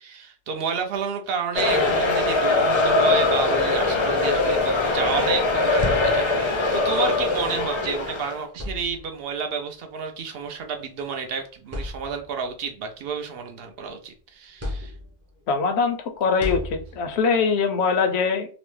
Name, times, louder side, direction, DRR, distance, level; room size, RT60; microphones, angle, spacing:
voice 1, 0.0-14.9, right 5 dB, 70° right, 5 dB, 0.8 m, -30 dB
Football-crowd-Cheer+Jeers, 1.5-8.4, left 3 dB, 40° left, 0.5 m, -22 dB
sound 1, 5.8-6.6 7.8-8.0 8.5-9.3 10.4-10.6 11.1-11.2 11.7-12.5 13.0-14.0 14.6-15.4 16.4-17.3, left 1 dB, 20° right, 0.6 m, -35 dB
voice 2, 15.5-18.5, left 5 dB, 85° left, 5 dB, 0.9 m, -22 dB
2.9 x 2.0 x 3.1 m, 0.40 s
omnidirectional pair, 1.1 m